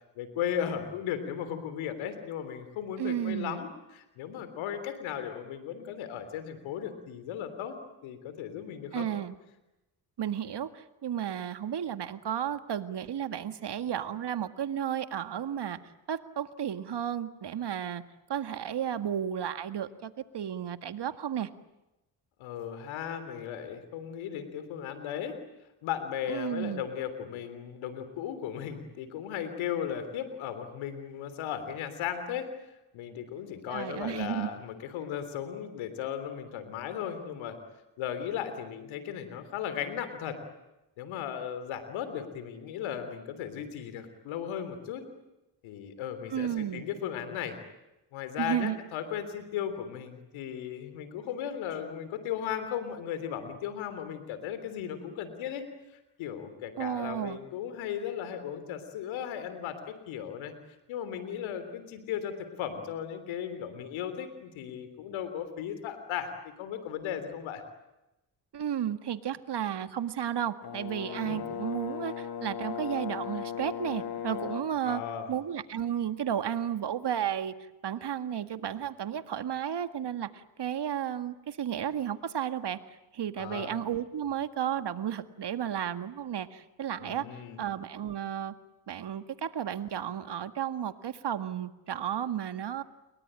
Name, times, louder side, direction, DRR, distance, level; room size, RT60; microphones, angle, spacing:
voice 1, 0.1-7.7 8.0-9.1 22.4-25.3 25.8-32.5 32.9-37.6 38.0-40.4 41.0-45.0 45.6-47.6 48.1-55.6 56.2-60.5 60.9-66.3 66.6-67.6 71.2-71.4 74.8-75.3 83.4-83.7 87.0-87.6, left 9 dB, 85° left, 10 dB, 3.5 m, -36 dB
voice 2, 3.0-3.6 8.9-9.4 10.2-15.8 16.1-18.0 18.3-21.5 26.3-26.8 33.7-34.5 46.3-46.8 48.4-48.8 56.8-57.4 68.5-75.0 75.3-77.5 77.8-82.8 83.1-87.2 87.6-88.5 88.9-92.8, right 9 dB, 60° right, 11 dB, 1.9 m, -33 dB
Brass instrument, 70.6-74.8, left 9 dB, 50° left, 1.7 m, -37 dB
29.0 x 23.0 x 8.9 m, 0.96 s
supercardioid pair, 50°, 46 cm